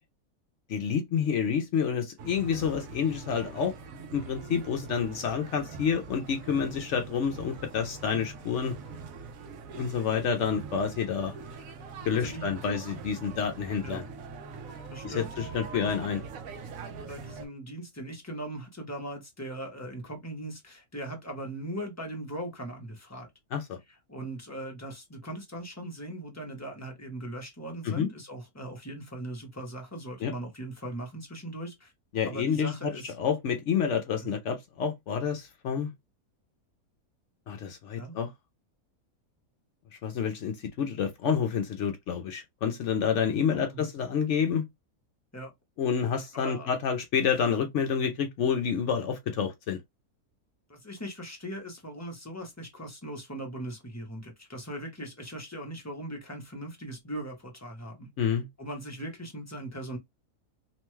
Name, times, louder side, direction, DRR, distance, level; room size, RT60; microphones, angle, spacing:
voice 1, 0.7-3.7 4.1-8.8 9.8-11.4 12.1-14.1 15.0-16.2 23.5-23.8 27.9-28.1 30.2-30.3 32.1-32.9 33.2-35.9 37.5-38.3 40.0-44.6 45.8-49.8 58.2-58.5, left 7 dB, 65° left, 0.8 m, -29 dB
sound 1, 2.2-17.5, right 5 dB, 70° right, 1.0 m, -43 dB
voice 2, 12.1-12.8 13.1-13.2 13.8-14.0 14.9-16.1 17.0-23.3 24.1-31.9 32.2-33.1 34.2-34.3 38.0-38.2 43.2-43.8 45.3-45.5 46.3-46.7 50.7-58.1 58.6-60.0, right 1 dB, 15° left, 0.6 m, -39 dB
3.0 x 2.2 x 3.0 m
omnidirectional pair, 1.6 m